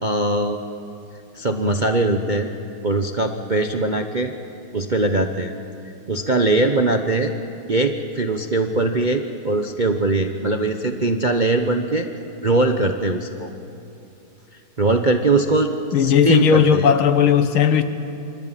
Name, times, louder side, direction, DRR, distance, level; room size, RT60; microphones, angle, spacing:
voice 1, 0.0-0.6 1.3-2.5 2.8-4.3 4.7-5.5 6.1-7.3 7.7-12.1 12.4-13.5 14.8-15.7 16.0-16.8, right 2 dB, 40° right, 5 dB, 0.7 m, -21 dB
voice 2, 15.9-17.8, left 7 dB, 85° left, 10 dB, 2.1 m, -16 dB
26.5 x 24.0 x 9.0 m, 2.7 s
omnidirectional pair, 2.3 m